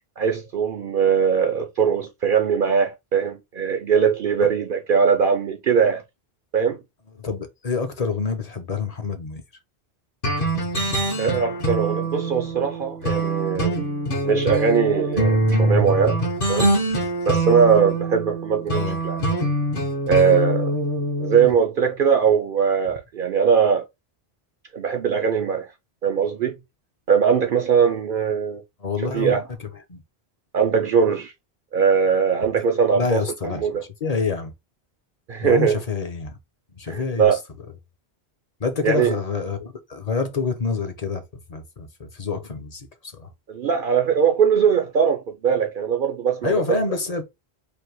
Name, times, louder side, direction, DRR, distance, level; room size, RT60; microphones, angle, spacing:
voice 1, 0.2-6.0 6.5-6.8 11.2-13.7 14.1-16.2 16.5-16.7 17.2-19.2 20.1-20.7 21.2-23.8 24.7-25.7 26.0-26.5 27.1-28.6 29.1-29.4 30.5-31.3 31.7-33.2 33.5-33.8 35.3-35.8 36.9-37.4 38.8-39.1 43.5-46.8, right 6 dB, 60° right, 0.8 m, -20 dB
voice 2, 7.2-9.4 18.7-19.0 28.8-30.0 32.9-34.5 35.4-36.4 36.7-37.4 38.6-41.2 41.5-43.3 46.4-47.2, left 4 dB, 40° left, 0.9 m, -27 dB
sound 1, 10.2-21.5, right 1 dB, 55° left, 1.6 m, -24 dB
3.4 x 2.8 x 4.5 m
omnidirectional pair, 1.1 m